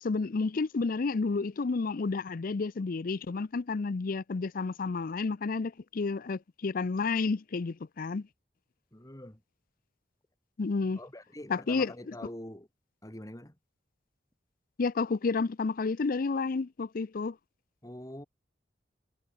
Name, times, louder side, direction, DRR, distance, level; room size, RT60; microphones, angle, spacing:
voice 1, 0.0-8.3 10.6-11.0 11.5-11.9 14.8-17.4, left 4 dB, 50° left, 0.5 m, -30 dB
voice 2, 8.9-9.4 11.0-12.7 13.0-13.6 17.8-18.3, left 1 dB, 20° left, 2.4 m, -44 dB
head